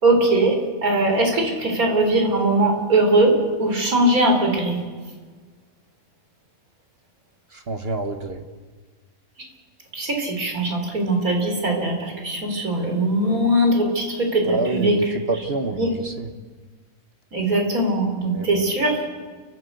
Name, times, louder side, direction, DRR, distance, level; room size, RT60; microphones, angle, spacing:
voice 1, 0.0-4.8 9.9-15.0 15.8-15.9 17.3-19.0, right 1 dB, 75° right, 2 dB, 4.1 m, -20 dB
voice 2, 7.5-8.4 14.4-16.3 18.3-18.7, right 2 dB, 45° right, 7 dB, 1.3 m, -28 dB
29.0 x 12.0 x 8.2 m, 1.5 s
omnidirectional pair, 1.5 m